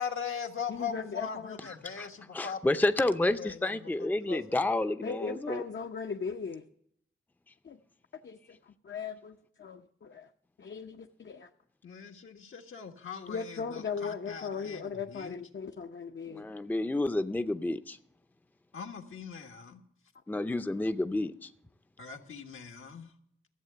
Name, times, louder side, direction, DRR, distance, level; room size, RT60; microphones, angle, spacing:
voice 1, 0.0-2.6 3.4-4.7 11.8-15.4 18.7-19.8 22.0-23.1, left 7 dB, 80° left, 1.4 m, -40 dB
voice 2, 0.7-1.6 5.0-6.6 7.6-7.8 8.1-10.3 10.6-11.5 13.3-16.5, left 5 dB, 60° left, 0.7 m, -38 dB
voice 3, 2.0-5.6 16.3-18.0 20.3-21.5, left 2 dB, 10° left, 0.5 m, -30 dB
14.0 x 7.5 x 6.8 m
wide cardioid pair, 85°, 21 cm